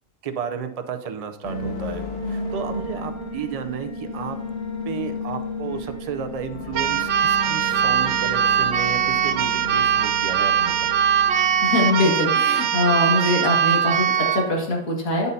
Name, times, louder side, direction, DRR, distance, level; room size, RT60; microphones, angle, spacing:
voice 1, 0.2-4.4 4.9-10.9, right 6 dB, 45° right, 7 dB, 0.5 m, -32 dB
sound 1, 1.4-13.0, left 2 dB, 50° left, 1.4 m, -33 dB
Keyboard (musical), 6.7-14.5, right 8 dB, 60° right, 0.8 m, -21 dB
voice 2, 11.6-15.3, left 2 dB, 80° left, -2 dB, 2.4 m, -22 dB
13.5 x 5.5 x 2.7 m, 0.81 s
omnidirectional pair, 1.4 m